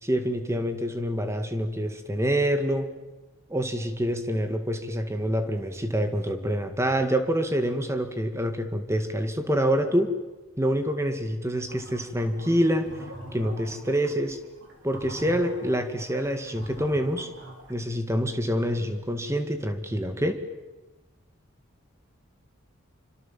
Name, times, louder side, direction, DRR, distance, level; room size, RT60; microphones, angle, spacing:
voice 1, 0.0-2.9 3.5-10.1 10.6-12.9 13.3-14.4 14.8-17.3 17.7-20.4, equal, 15° right, 7 dB, 2.0 m, -26 dB
sound 1, 11.7-17.7, equal, 60° right, 5.4 m, -43 dB
26.5 x 25.0 x 7.4 m, 1.1 s
head